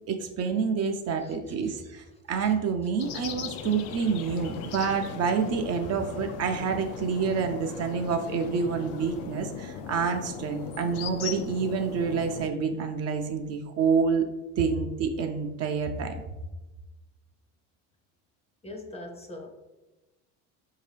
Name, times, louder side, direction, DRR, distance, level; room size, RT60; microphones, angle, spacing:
voice 1, 0.1-14.3 14.6-16.2, right 5 dB, 45° right, 5 dB, 0.5 m, -28 dB
voice 2, 1.2-1.8 2.4-2.5 18.6-19.5, left 1 dB, 15° left, 3 dB, 0.6 m, -43 dB
sound 1, 3.0-12.5, left 7 dB, 75° left, 0.5 m, -39 dB
Livestock farm animals working animals, 3.5-9.3, left 3 dB, 55° left, 0.8 m, -49 dB
4.4 x 2.8 x 3.3 m, 1.1 s
supercardioid pair, 95°, 37 cm